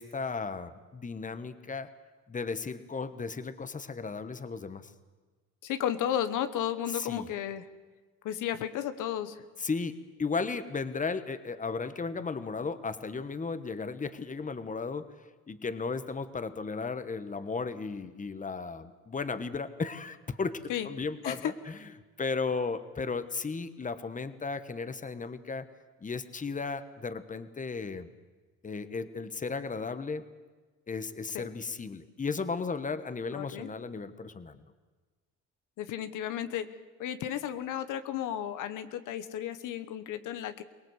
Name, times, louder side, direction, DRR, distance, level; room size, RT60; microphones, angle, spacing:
voice 1, 0.0-1.9 2.3-4.9 6.9-7.3 9.6-15.0 15.5-21.8 22.2-25.6 26.0-28.1 28.6-30.2 30.9-34.6, left 4 dB, 25° left, 12 dB, 1.3 m, -35 dB
voice 2, 5.6-7.7 8.2-9.4 20.7-20.9 21.2-21.5 31.3-31.5 33.3-33.7 35.8-36.7 37.0-40.6, left 10 dB, 85° left, 11 dB, 1.2 m, -33 dB
23.5 x 19.0 x 8.1 m, 1.3 s
cardioid pair, 90°, 30 cm